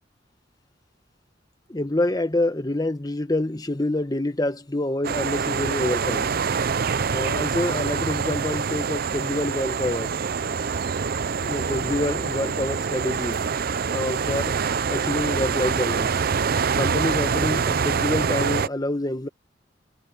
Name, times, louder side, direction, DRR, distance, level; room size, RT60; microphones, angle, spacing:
voice 1, 1.7-6.3 7.1-10.1 11.4-13.4 13.9-14.5 14.9-16.1 16.8-19.3, left 1 dB, 20° left, 1.2 m, -27 dB
sound 1, 5.0-18.7, right 6 dB, 55° right, 0.6 m, -25 dB
head